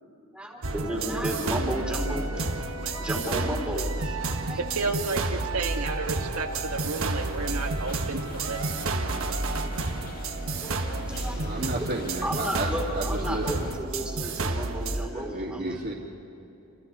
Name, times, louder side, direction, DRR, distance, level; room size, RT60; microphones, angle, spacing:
voice 1, 0.3-2.4 2.9-4.6 10.6-11.5 12.2-15.9, equal, 5° right, -1 dB, 3.4 m, -33 dB
sound 1, 0.6-15.1, right 2 dB, 65° right, 1.4 m, -30 dB
voice 2, 4.3-10.3, right 3 dB, 85° right, 3 dB, 1.6 m, -33 dB
sound 2, 6.7-13.8, left 1 dB, 40° left, 1.9 m, -43 dB
voice 3, 11.3-13.7 15.0-15.9, right 2 dB, 45° right, -7 dB, 2.8 m, -33 dB
28.5 x 27.0 x 4.2 m, 2.9 s
head